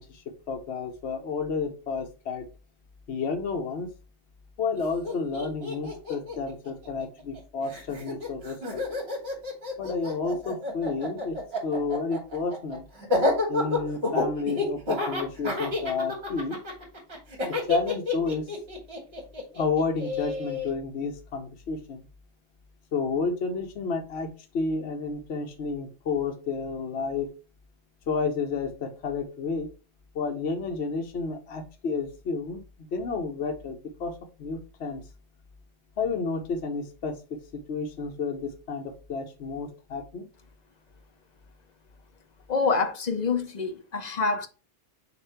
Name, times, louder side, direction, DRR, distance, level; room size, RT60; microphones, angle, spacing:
voice 1, 0.0-2.5 3.1-3.9 4.6-8.8 9.8-12.8 13.5-16.6 17.7-18.5 19.5-22.0 22.9-27.3 28.1-29.7 30.1-32.6 32.9-34.1 34.4-35.0 36.0-37.1 37.7-40.3, left 4 dB, 60° left, 1.1 m, -31 dB
Laughter, 4.8-4.9 5.0-7.4 7.7-20.7, left 2 dB, 50° right, 2.7 m, -29 dB
voice 2, 42.5-44.5, left 4 dB, 40° left, 0.7 m, -26 dB
6.7 x 2.6 x 5.6 m
omnidirectional pair, 1.4 m